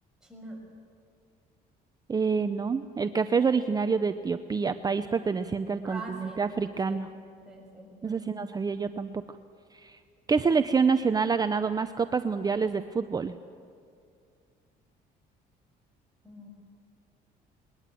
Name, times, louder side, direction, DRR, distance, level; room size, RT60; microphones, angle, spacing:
voice 1, 0.2-0.6 5.8-6.4 6.8-7.0 7.4-8.3 16.2-16.5, right 2 dB, 5° right, -1 dB, 6.2 m, -43 dB
voice 2, 2.1-7.1 8.0-9.1 9.8-10.0 10.3-13.4, right 5 dB, 25° right, 10 dB, 0.6 m, -27 dB
20.5 x 20.5 x 7.7 m, 2.3 s
cardioid pair, 110°, 17 cm